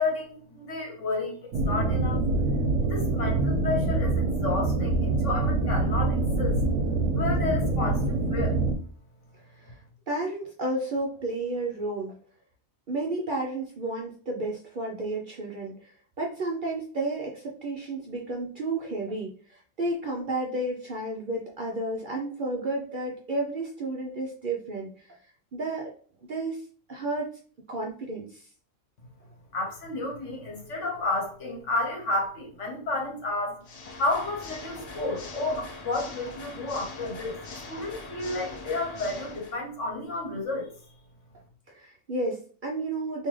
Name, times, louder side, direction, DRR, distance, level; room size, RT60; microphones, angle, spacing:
voice 1, 0.0-2.2 2.8-6.6 7.1-8.6 29.5-33.7 34.0-37.4 37.7-40.7, left 2 dB, 65° left, 0 dB, 1.4 m, -31 dB
sound 1, 1.5-8.8, right 2 dB, 75° right, 1.0 m, -25 dB
voice 2, 10.1-12.1 12.9-15.9 16.2-25.2 25.5-25.9 26.3-26.6 26.9-27.3 27.7-28.5 41.7-43.3, right 2 dB, 55° right, 0 dB, 0.6 m, -32 dB
Water / Mechanisms, 33.6-39.6, left 3 dB, 85° left, 0.3 m, -42 dB
3.6 x 2.7 x 3.1 m, 0.44 s
omnidirectional pair, 1.4 m